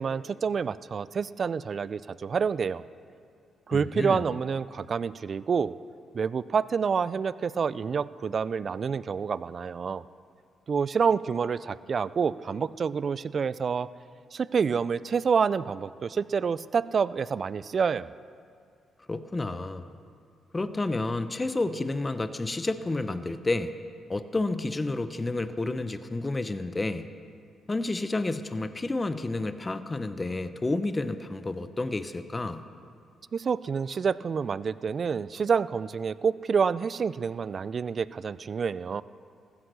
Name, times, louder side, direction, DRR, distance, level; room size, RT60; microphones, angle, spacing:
voice 1, 0.0-2.8 3.7-5.7 6.1-10.0 10.7-13.9 14.3-18.1 33.3-39.0, right 6 dB, 50° right, 18 dB, 0.4 m, -28 dB
voice 2, 3.7-4.2 19.1-19.9 20.5-23.7 24.1-27.1 27.7-32.6, left 2 dB, 25° left, 11 dB, 0.7 m, -30 dB
15.0 x 9.7 x 6.8 m, 2.3 s
supercardioid pair, 65°, 0 cm